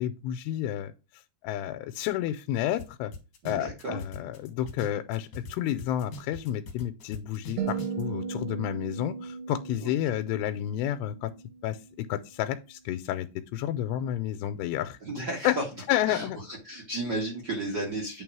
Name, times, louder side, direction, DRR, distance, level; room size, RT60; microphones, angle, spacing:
voice 1, 0.0-3.1 3.5-11.3 11.6-13.3 13.5-15.0 15.4-15.5 15.9-16.4, left 12 dB, 90° left, 9 dB, 2.6 m, -30 dB
sound 1, 2.8-2.9 3.1-5.5 5.8-8.0, left 2 dB, 65° left, 1.6 m, -42 dB
voice 2, 3.4-4.0 9.8-9.9 15.0-15.6 16.1-18.2, right 2 dB, 55° right, -1 dB, 1.1 m, -33 dB
sound 2, 7.6-11.9, right 6 dB, 80° right, 3.3 m, -37 dB
8.5 x 3.7 x 4.7 m, 0.29 s
omnidirectional pair, 4.7 m